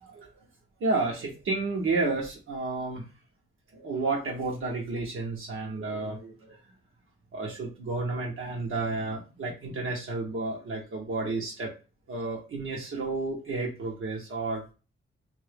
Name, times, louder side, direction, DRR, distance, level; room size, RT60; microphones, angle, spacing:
voice 1, 0.8-3.0 3.7-6.6 7.3-11.7 12.1-14.6, right 3 dB, 75° right, -2 dB, 1.0 m, -31 dB
2.8 x 2.6 x 3.3 m, 0.31 s
wide cardioid pair, 160°, 21 cm